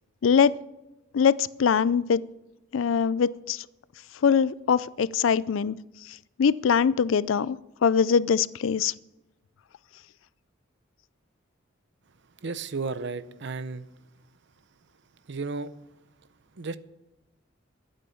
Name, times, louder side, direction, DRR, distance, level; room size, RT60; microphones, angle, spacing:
voice 1, 0.2-0.5 1.1-2.2 2.7-3.7 4.2-5.8 6.1-8.9, left 6 dB, 75° left, 19 dB, 0.4 m, -23 dB
voice 2, 12.4-13.9 15.3-15.7 16.6-16.8, right 4 dB, 65° right, 15 dB, 0.7 m, -33 dB
12.5 x 8.9 x 7.1 m, 0.97 s
head